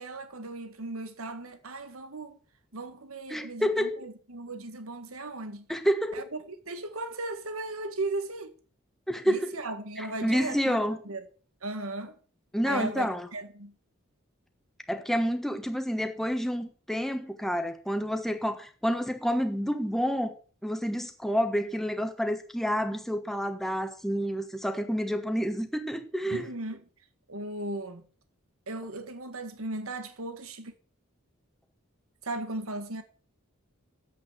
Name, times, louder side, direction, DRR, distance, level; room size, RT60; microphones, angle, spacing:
voice 1, 0.0-2.4 2.7-5.7 6.1-8.5 9.2-11.3 11.6-12.2 12.7-13.7 26.3-26.8 27.3-28.0 28.7-30.7 32.2-33.0, right 2 dB, 80° right, 1.8 m, -37 dB
voice 2, 3.3-4.1 5.7-6.3 9.1-9.5 10.0-11.0 12.5-13.3 14.9-20.4 20.6-26.5, equal, ahead, 1.3 m, -29 dB
9.3 x 8.3 x 8.0 m
head